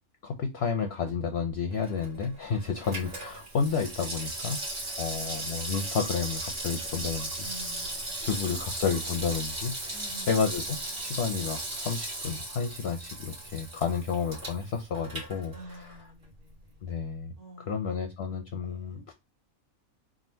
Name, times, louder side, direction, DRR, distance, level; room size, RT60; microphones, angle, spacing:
voice 1, 0.2-4.6 5.0-7.3 8.2-9.9 10.3-10.6 11.0-15.5 16.8-17.3 17.7-19.1, left 5 dB, 60° left, 0.7 m, -31 dB
Water tap faucet / Sink (filling or washing), 1.7-16.0 16.3-16.4, right 2 dB, 40° right, 1.6 m, -37 dB
voice 2, 7.4-8.3 9.9-11.2 15.5-17.0 17.4-17.9 18.6-19.0, right 1 dB, 90° right, 1.7 m, -49 dB
3.6 x 2.4 x 4.3 m
omnidirectional pair, 1.5 m